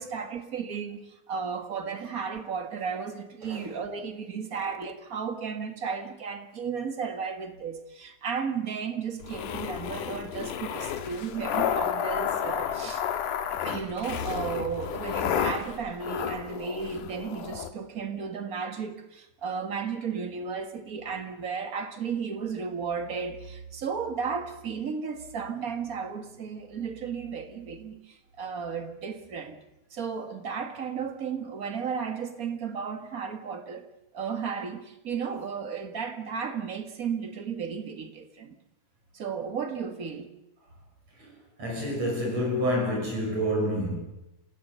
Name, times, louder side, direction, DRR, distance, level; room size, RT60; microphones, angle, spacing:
voice 1, 0.0-13.0 13.6-29.6 29.9-33.9 34.1-38.5 39.1-40.3, right 6 dB, 35° right, 1.6 m, -34 dB
sound 1, 9.2-17.7, left 9 dB, 80° left, 2.8 m, -31 dB
voice 2, 41.6-44.0, equal, 55° right, 7.5 m, -28 dB
28.0 x 17.0 x 6.8 m
omnidirectional pair, 3.6 m